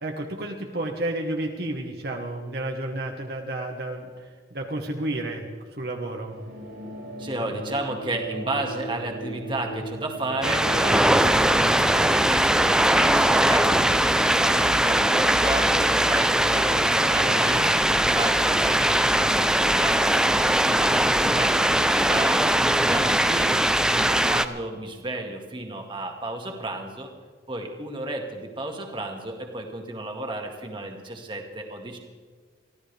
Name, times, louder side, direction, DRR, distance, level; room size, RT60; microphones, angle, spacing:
voice 1, 0.0-4.2 4.5-5.4 5.8-6.3 17.2-17.7, right 1 dB, 55° right, 1 dB, 1.4 m, -31 dB
sound 1, 6.1-21.0, right 1 dB, 80° right, 5.0 m, -40 dB
voice 2, 7.2-22.4 22.8-23.6 23.9-27.1 27.5-32.0, right 2 dB, 25° right, 2 dB, 2.0 m, -33 dB
sound 2, 10.4-24.5, right 1 dB, 5° right, 0.4 m, -20 dB
24.0 x 15.5 x 3.5 m, 1.5 s
head